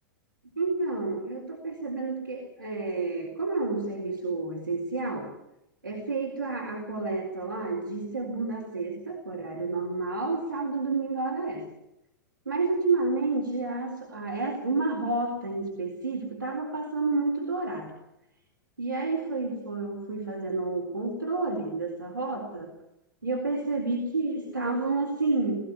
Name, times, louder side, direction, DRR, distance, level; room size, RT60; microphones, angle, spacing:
voice 1, 0.6-5.3 5.8-11.7 12.5-17.9 18.8-22.7 23.2-25.7, right 3 dB, 85° right, -2 dB, 3.9 m, -30 dB
19.0 x 15.0 x 9.8 m, 0.89 s
figure-of-eight pair, 95°, 11 cm